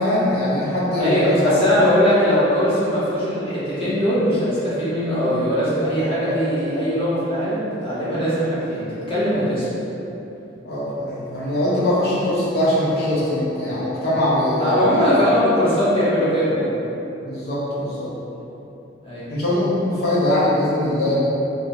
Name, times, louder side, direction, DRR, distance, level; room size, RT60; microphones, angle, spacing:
voice 1, 0.0-1.5 1.8-2.0 5.9-6.0 10.6-15.0 17.2-18.1 19.3-21.1, left 1 dB, 55° left, -8 dB, 0.9 m, -22 dB
voice 2, 1.0-9.7 14.6-16.7 19.0-19.3, equal, 30° left, -10 dB, 0.9 m, -20 dB
3.2 x 3.1 x 2.7 m, 3.0 s
head